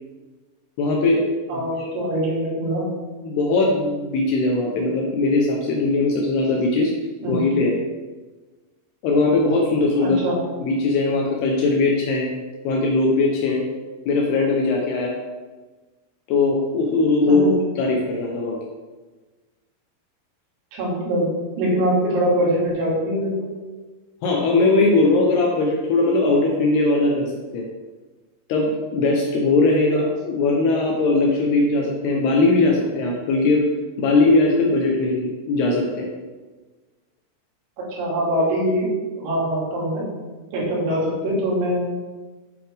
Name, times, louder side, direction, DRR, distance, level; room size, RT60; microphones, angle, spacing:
voice 1, 0.8-1.9 3.2-6.9 7.3-7.8 9.0-10.2 10.6-12.3 12.6-13.7 14.1-15.1 16.3-17.4 17.8-18.6 24.2-27.7 28.5-33.7 34.0-36.1, left 3 dB, 75° left, -1 dB, 2.5 m, -20 dB
voice 2, 1.5-2.9 7.2-7.4 10.0-10.4 17.2-17.5 20.7-21.3 21.6-23.4 29.9-30.0 37.8-38.9 39.2-40.0 40.5-41.8, equal, 75° right, -5 dB, 4.8 m, -23 dB
9.2 x 7.4 x 3.4 m, 1.3 s
omnidirectional pair, 5.5 m